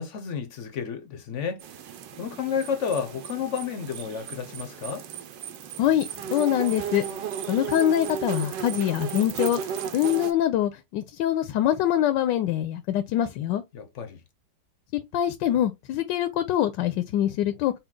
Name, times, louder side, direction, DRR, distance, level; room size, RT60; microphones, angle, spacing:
voice 1, 0.0-5.1 13.7-14.2, left 7 dB, 60° left, 0.8 m, -31 dB
sound 1, 1.6-10.3, right 8 dB, 85° right, 1.4 m, -35 dB
voice 2, 5.8-7.0 7.5-13.6 15.1-17.7, left 11 dB, 80° left, 1.2 m, -24 dB
5.7 x 2.3 x 3.7 m
omnidirectional pair, 1.9 m